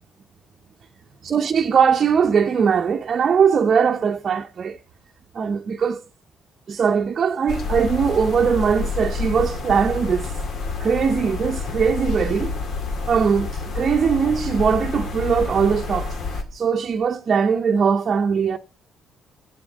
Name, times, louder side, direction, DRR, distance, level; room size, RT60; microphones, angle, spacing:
voice 1, 1.2-4.8 5.3-6.0 6.7-10.3 10.8-12.6 13.1-18.6, right 6 dB, 45° right, 0.7 m, -20 dB
sound 1, 7.5-16.4, left 4 dB, 60° left, 2.1 m, -28 dB
8.4 x 7.9 x 8.8 m
cardioid pair, 110°, 0 cm